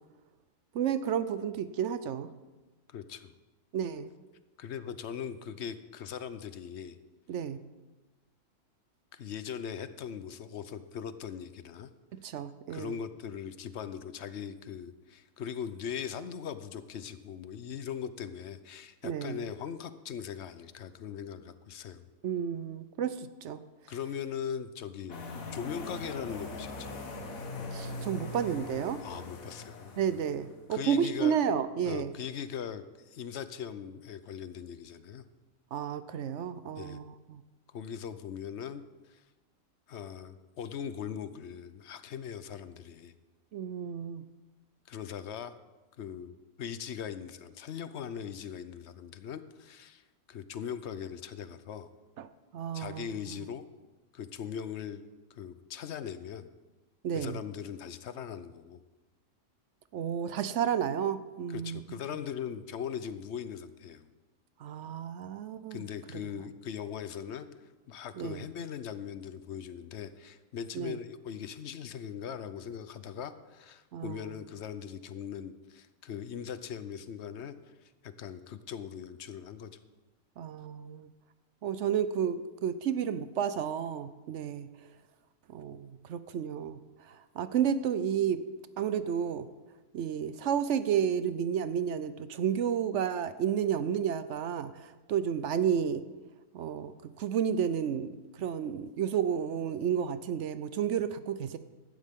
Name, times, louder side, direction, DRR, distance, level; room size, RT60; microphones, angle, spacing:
voice 1, 0.7-2.3 3.7-4.1 7.3-7.6 12.2-13.0 19.0-19.4 22.2-23.6 27.7-29.0 30.0-32.1 35.7-37.0 37.3-37.4 43.5-44.2 52.2-52.3 52.5-53.1 57.0-57.4 59.9-62.0 64.6-65.8 68.2-68.4 70.7-71.0 73.9-74.3 80.4-81.1 81.6-84.7 85.5-86.8 87.1-88.4 88.8-89.5 89.9-96.0 96.5-96.9 97.2-98.1 98.4-101.6, right 8 dB, 65° right, 13 dB, 0.9 m, -31 dB
voice 2, 2.9-3.3 4.6-7.0 9.1-11.9 12.7-22.1 23.9-26.9 29.0-29.9 30.7-31.4 31.8-35.2 36.8-37.0 37.7-38.8 39.1-39.2 39.9-43.1 44.9-45.5 46.0-50.0 50.3-51.9 52.7-53.6 54.1-55.0 55.3-56.5 57.1-58.8 61.5-64.1 65.7-67.5 67.9-79.7, left 8 dB, 60° left, 12 dB, 0.9 m, -40 dB
sound 1, 25.1-30.6, left 2 dB, 85° left, 1.8 m, -41 dB
15.5 x 11.5 x 3.6 m, 1.2 s
omnidirectional pair, 1.4 m